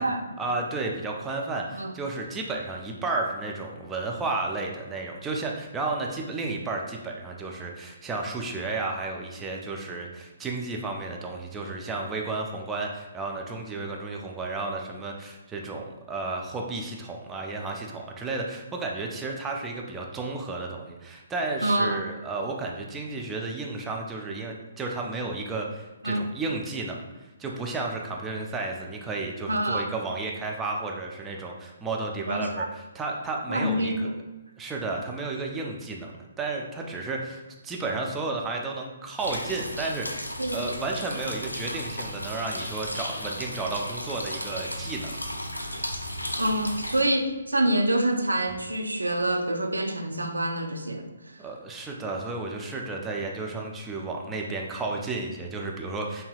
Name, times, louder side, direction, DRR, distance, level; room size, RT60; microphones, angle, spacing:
voice 1, 0.4-27.0 27.4-34.1 34.6-36.1 36.4-45.1 51.4-56.2, right 3 dB, 10° right, 0 dB, 0.4 m, -32 dB
voice 2, 21.6-22.0 26.0-26.3 29.5-29.9 32.3-32.7 33.5-34.2 40.4-40.7 46.4-51.5, right 1 dB, 80° right, 4 dB, 0.4 m, -26 dB
sound 1, 39.2-47.0, equal, 85° left, 0.5 m, -35 dB
5.4 x 2.7 x 2.3 m, 1.2 s
figure-of-eight pair, 130°, 0 cm